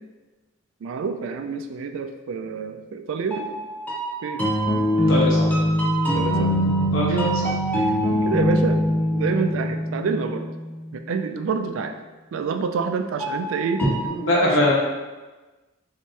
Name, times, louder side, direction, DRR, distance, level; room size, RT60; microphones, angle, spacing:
voice 1, 0.8-3.6 4.2-4.5 6.1-6.5 7.1-7.2 7.7-8.0 8.2-8.8 9.1-10.5 10.9-12.0 12.3-13.8 14.4-14.7, right 5 dB, 75° right, 7 dB, 0.3 m, -27 dB
sound 1, 3.3-11.0 13.2-14.1, equal, 10° left, 0.5 m, -23 dB
voice 2, 4.9-5.5 6.9-7.3 14.0-14.7, left 1 dB, 70° left, -5 dB, 1.0 m, -21 dB
3.4 x 2.8 x 3.1 m, 1.2 s
head